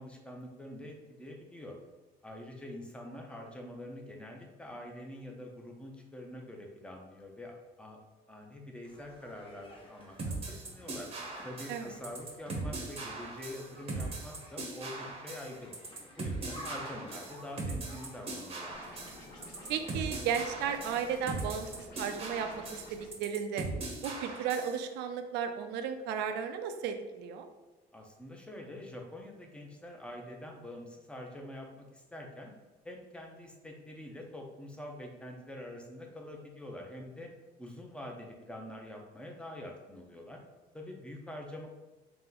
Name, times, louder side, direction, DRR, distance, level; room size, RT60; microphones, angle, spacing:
voice 1, 0.0-1.8 2.2-8.0 8.3-11.1 11.4-15.7 16.2-18.8 27.9-32.5 32.8-37.3 37.6-40.4 40.7-41.7, left 1 dB, 5° left, 1 dB, 0.7 m, -45 dB
sound 1, 8.8-21.5, left 1 dB, 35° left, 1.0 m, -52 dB
sound 2, 10.2-24.8, right 3 dB, 35° right, 0.8 m, -39 dB
sound 3, 18.7-23.1, left 2 dB, 80° left, 1.4 m, -51 dB
voice 2, 19.7-21.7 22.0-23.7 24.0-27.5, right 7 dB, 90° right, 7 dB, 0.5 m, -34 dB
3.3 x 2.9 x 3.8 m, 1.1 s
cardioid pair, 110°, 17 cm